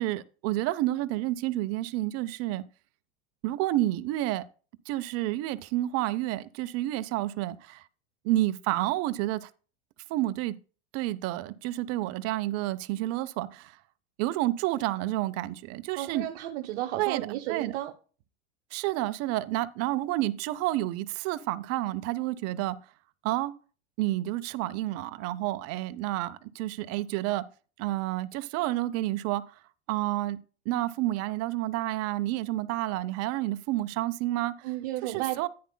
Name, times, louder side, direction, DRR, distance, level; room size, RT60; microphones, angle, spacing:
voice 1, 0.0-2.6 3.4-4.4 4.9-7.8 8.2-9.5 10.1-10.5 10.9-13.8 14.2-16.3 17.0-17.7 18.7-22.8 23.2-23.5 24.0-27.4 27.8-29.4 29.9-30.4 30.7-34.5 35.0-35.5, right 16 dB, 45° right, 0.6 m, -29 dB
voice 2, 16.0-17.9 34.6-35.4, right 14 dB, 70° right, 0.9 m, -33 dB
10.5 x 9.5 x 2.2 m
hypercardioid pair, 110°, 33 cm